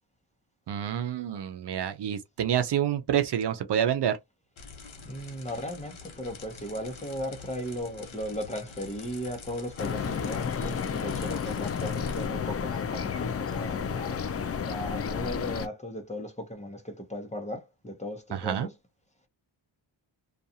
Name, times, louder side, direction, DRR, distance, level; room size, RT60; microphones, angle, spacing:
voice 1, 0.7-4.2 18.3-18.7, right 10 dB, 60° right, 0.5 m, -28 dB
sound 1, 4.6-12.3, left 4 dB, 80° left, 1.1 m, -46 dB
voice 2, 5.0-14.2 14.6-18.7, equal, 15° left, 0.8 m, -37 dB
sound 2, 9.8-15.7, left 6 dB, 35° left, 0.4 m, -31 dB
2.5 x 2.3 x 2.7 m
wide cardioid pair, 100°, 46 cm